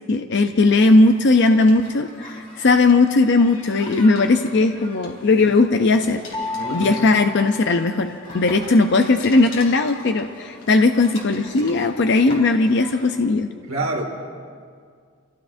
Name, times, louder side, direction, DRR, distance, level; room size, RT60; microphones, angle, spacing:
voice 1, 0.1-6.2 6.7-13.5, left 3 dB, 55° left, 6 dB, 0.6 m, -17 dB
sound 1, 0.6-2.1 2.4-3.1 3.7-5.6 6.0-12.0 12.3-12.9, left 2 dB, 75° left, 3.3 m, -42 dB
sound 2, 0.7-13.3, left 1 dB, 35° left, 2.4 m, -44 dB
sound 3, 6.3-8.5, left 3 dB, 20° left, 1.5 m, -32 dB
voice 2, 6.5-7.0 13.7-14.1, right 2 dB, 90° right, -1 dB, 2.3 m, -27 dB
28.0 x 15.5 x 2.6 m, 2.1 s
head